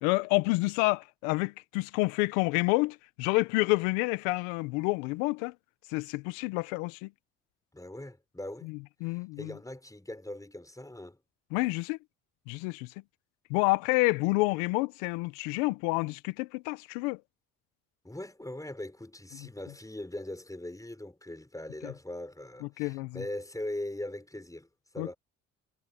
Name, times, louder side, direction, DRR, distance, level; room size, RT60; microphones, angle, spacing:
voice 1, 0.0-5.5 5.9-7.1 8.6-9.5 11.5-12.0 12.5-12.9 13.5-17.2 21.8-21.9 22.8-23.2 25.0-25.1, left 24 dB, 85° left, 1.2 m, -29 dB
voice 2, 7.7-8.7 9.0-11.2 18.0-24.7 24.9-25.2, left 1 dB, 10° left, 5.9 m, -40 dB
hypercardioid pair, 55°, 38 cm